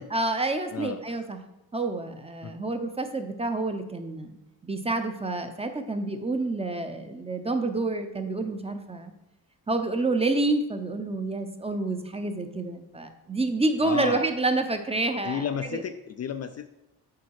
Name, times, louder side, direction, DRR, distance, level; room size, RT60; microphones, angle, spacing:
voice 1, 0.0-1.4 1.7-4.3 4.6-9.1 9.7-15.4, right 2 dB, 15° right, 7 dB, 0.7 m, -28 dB
voice 2, 13.8-14.3 15.2-16.7, left 7 dB, 40° left, 9 dB, 0.4 m, -32 dB
8.4 x 5.2 x 4.7 m, 0.95 s
cardioid pair, 130°, 40 cm